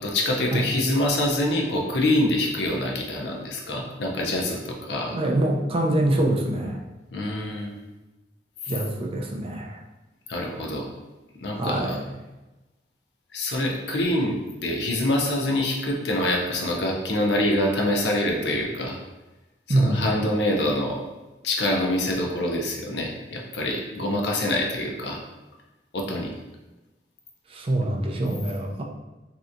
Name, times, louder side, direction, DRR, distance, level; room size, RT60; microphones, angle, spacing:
voice 1, 0.0-5.2 7.1-7.8 8.6-8.7 10.3-10.9 11.4-12.0 13.3-19.0 19.7-21.0 21.4-25.2 25.9-26.3, left 1 dB, 70° left, 0 dB, 0.6 m, -25 dB
voice 2, 5.1-6.8 8.7-9.8 11.5-12.0 19.7-20.1 27.5-28.8, right 1 dB, 30° right, 0 dB, 0.4 m, -24 dB
3.3 x 2.8 x 2.5 m, 1.1 s
head